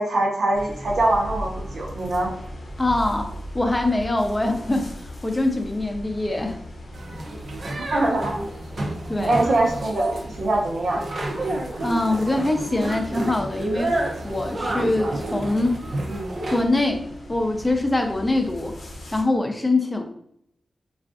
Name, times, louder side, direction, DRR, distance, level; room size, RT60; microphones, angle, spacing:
voice 1, 0.0-2.3 7.9-8.4 9.1-11.0, right 2 dB, 90° right, -2 dB, 0.8 m, -23 dB
sound 1, 0.6-19.2, equal, 75° left, 0.7 m, -39 dB
voice 2, 2.8-6.6 9.1-9.4 11.8-14.0 14.2-15.8 16.5-18.7 19.1-20.0, left 2 dB, 20° left, 4 dB, 0.5 m, -23 dB
sound 2, 6.9-16.6, right 2 dB, 60° right, 0.5 m, -30 dB
3.5 x 2.4 x 2.4 m, 0.71 s
wide cardioid pair, 95°, 0 cm